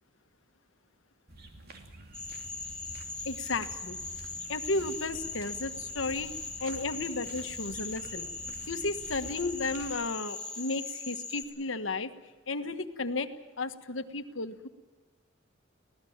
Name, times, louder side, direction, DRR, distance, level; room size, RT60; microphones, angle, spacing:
sound 1, 1.3-10.0, right 1 dB, 55° right, 2.8 m, -49 dB
Cricket / Frog, 2.1-11.4, left 3 dB, 5° left, 3.4 m, -40 dB
voice 1, 3.2-4.0 4.5-6.3 6.6-8.3 8.7-12.1 12.5-13.3 13.6-14.7, left 3 dB, 85° left, 8 dB, 1.5 m, -33 dB
25.0 x 17.5 x 7.4 m, 1.3 s
head